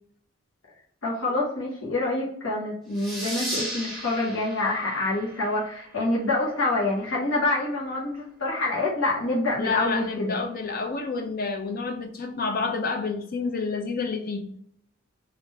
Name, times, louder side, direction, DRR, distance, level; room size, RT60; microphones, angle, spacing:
voice 1, 1.0-10.4, left 2 dB, 90° left, -5 dB, 0.9 m, -26 dB
sound 1, 2.9-6.2, equal, ahead, 0.9 m, -36 dB
voice 2, 9.6-14.5, left 4 dB, 50° left, 5 dB, 0.5 m, -29 dB
3.1 x 2.5 x 3.3 m, 0.66 s
head